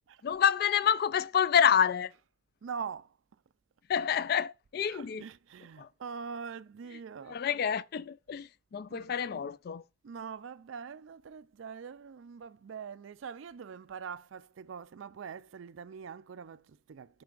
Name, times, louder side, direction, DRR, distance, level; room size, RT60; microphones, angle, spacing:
voice 1, 0.2-2.1 3.9-5.2 5.8-5.9 7.3-9.8, left 8 dB, 55° left, 0.3 m, -28 dB
voice 2, 2.6-3.2 4.8-7.4 8.9-9.5 10.0-17.2, right 6 dB, 90° right, 0.4 m, -43 dB
9.3 x 4.7 x 2.4 m
head